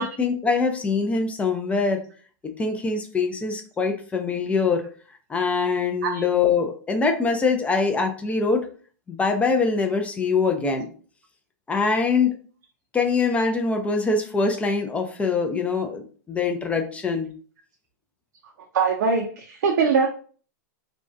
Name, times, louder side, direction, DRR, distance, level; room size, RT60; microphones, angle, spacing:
voice 1, 0.0-2.0 2.4-4.8 5.3-8.6 9.1-10.9 11.7-12.3 12.9-17.3, left 4 dB, 15° left, 4 dB, 0.3 m, -23 dB
voice 2, 18.7-20.1, right 5 dB, 75° right, 3 dB, 0.5 m, -22 dB
2.5 x 2.1 x 2.3 m, 0.41 s
hypercardioid pair, 120°, 10 cm